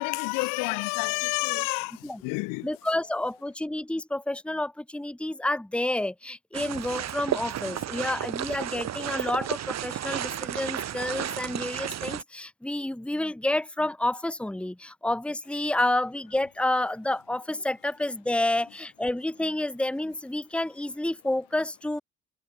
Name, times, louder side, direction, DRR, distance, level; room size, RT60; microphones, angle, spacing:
voice 1, 0.0-2.7, left 30 dB, 75° left, 2.3 m, -29 dB
voice 2, 2.6-22.0, left 1 dB, 5° left, 1.4 m, -29 dB
sound 1, 6.5-12.2, right 11 dB, 55° right, 2.4 m, -32 dB
hypercardioid pair, 55°, 32 cm